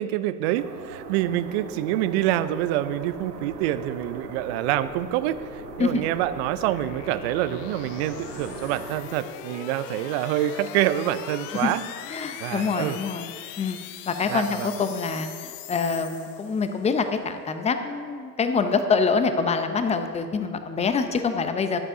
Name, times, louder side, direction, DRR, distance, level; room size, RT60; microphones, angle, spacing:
voice 1, 0.0-11.8 12.2-13.0 14.3-14.7, right 13 dB, 45° right, 14 dB, 0.5 m, -26 dB
sound 1, 0.5-9.0, right 4 dB, 75° right, 1.3 m, -40 dB
sound 2, 2.6-16.9, left 11 dB, 50° left, 0.8 m, -42 dB
voice 2, 12.1-13.8 14.1-21.8, left 5 dB, 15° left, 8 dB, 0.7 m, -25 dB
14.5 x 11.0 x 2.7 m, 2.3 s
hypercardioid pair, 90°, 50 cm